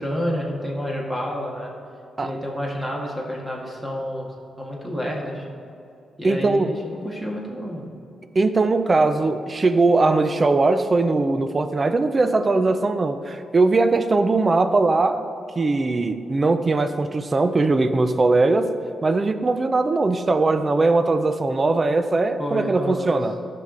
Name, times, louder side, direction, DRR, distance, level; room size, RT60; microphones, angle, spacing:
voice 1, 0.0-1.7 2.2-4.3 4.6-5.5 6.2-7.9 22.4-23.2, equal, 10° right, -2 dB, 1.6 m, -29 dB
voice 2, 6.2-6.7 8.3-15.2 15.6-18.8 19.0-23.3, right 3 dB, 30° right, 10 dB, 0.5 m, -20 dB
14.0 x 5.8 x 3.8 m, 2.4 s
cardioid pair, 120°, 0 cm